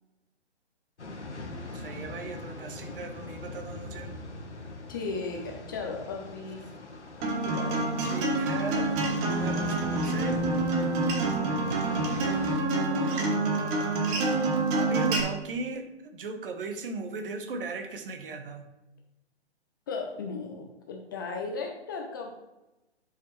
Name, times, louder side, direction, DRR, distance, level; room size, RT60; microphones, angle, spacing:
sound 1, 1.0-12.6, left 2 dB, 80° left, 1.3 m, -42 dB
voice 1, 1.7-4.1 8.0-9.0 9.4-10.5 12.9-13.9 14.1-18.7, right 3 dB, 50° right, 7 dB, 1.1 m, -38 dB
voice 2, 4.9-6.7 7.2-7.9 19.9-22.4, left 4 dB, 20° left, 1 dB, 0.5 m, -36 dB
Acoustic guitar, 7.2-15.2, right 2 dB, 20° right, 0.9 m, -27 dB
10.5 x 4.9 x 3.1 m, 1.0 s
figure-of-eight pair, 135°, 35 cm